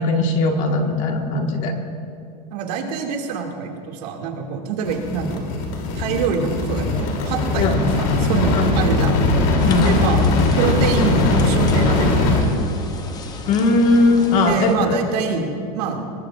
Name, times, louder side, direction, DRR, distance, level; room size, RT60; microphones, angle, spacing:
voice 1, 0.0-1.7 7.6-7.8 8.5-8.7 9.6-10.0 13.5-15.0 15.3-15.4, left 3 dB, 40° left, 3 dB, 1.7 m, -19 dB
voice 2, 2.5-5.5 5.9-9.2 9.8-10.2 10.5-12.5 14.4-16.0, right 6 dB, 70° right, 1 dB, 2.4 m, -25 dB
sound 1, 4.8-12.4, left 2 dB, 60° left, 3.2 m, -20 dB
sound 2, 9.6-14.8, left 4 dB, 20° left, 0.7 m, -35 dB
21.5 x 20.5 x 2.5 m, 2.5 s
supercardioid pair, 165°, 21 cm